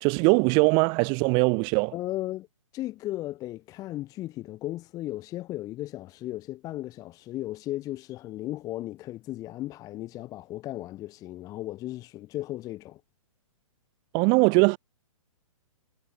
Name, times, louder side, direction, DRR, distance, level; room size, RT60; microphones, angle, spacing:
voice 1, 0.0-1.9 14.1-14.8, right 34 dB, 25° right, 0.5 m, -21 dB
voice 2, 1.9-2.5 2.7-13.0, left 15 dB, 20° left, 0.6 m, -36 dB
hypercardioid pair, 130°, 17 cm